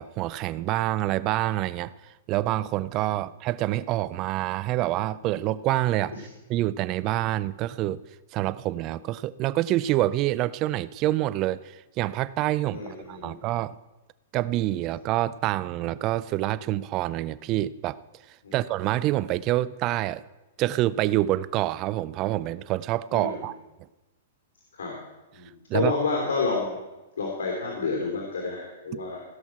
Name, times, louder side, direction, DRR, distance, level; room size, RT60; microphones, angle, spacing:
voice 1, 0.0-1.9 2.3-8.0 8.3-13.8 14.3-18.0 18.5-20.2 20.6-23.5 25.7-25.9, right 15 dB, 35° right, 18 dB, 0.4 m, -27 dB
voice 2, 12.7-13.4 18.4-18.6 23.1-23.4 24.8-24.9 25.3-26.8 27.2-29.2, left 4 dB, 85° left, -1 dB, 3.0 m, -29 dB
16.0 x 6.3 x 5.9 m, 1.1 s
hypercardioid pair, 145°, 0 cm